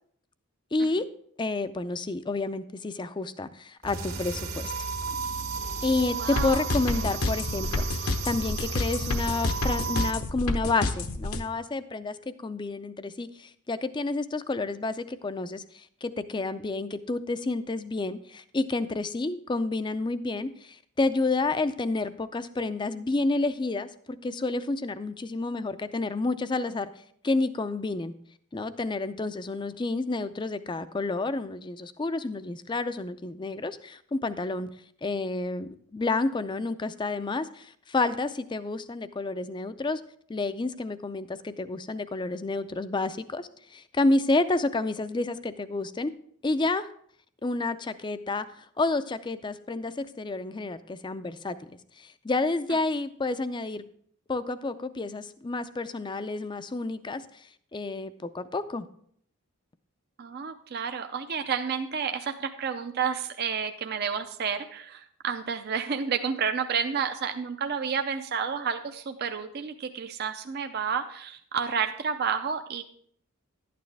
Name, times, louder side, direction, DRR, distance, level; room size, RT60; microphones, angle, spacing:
voice 1, 0.7-1.1 1.4-4.7 5.8-26.9 27.2-28.1 28.5-34.7 35.0-40.0 40.3-46.1 46.4-46.9 47.4-51.6 52.0-53.9 54.3-58.9, left 3 dB, 20° left, 12 dB, 0.4 m, -30 dB
sound 1, 3.8-10.1, right 4 dB, 75° right, 1.8 m, -33 dB
voice 2, 6.2-6.6 60.2-72.8, right 6 dB, 45° right, 7 dB, 0.5 m, -30 dB
sound 2, 6.4-11.4, left 2 dB, 75° left, 1.0 m, -28 dB
11.5 x 9.3 x 3.3 m, 0.63 s
head